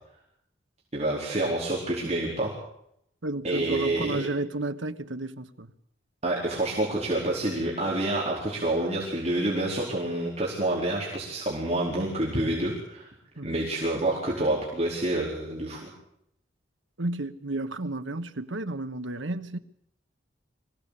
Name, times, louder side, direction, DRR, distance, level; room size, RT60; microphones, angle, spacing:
voice 1, 0.9-2.5 3.4-4.2 6.2-13.1 13.4-15.9, right 1 dB, 35° right, 4.6 m, -28 dB
voice 2, 3.2-5.7 13.4-13.6 17.0-19.6, right 2 dB, 85° right, 1.3 m, -32 dB
25.0 x 16.5 x 8.5 m
head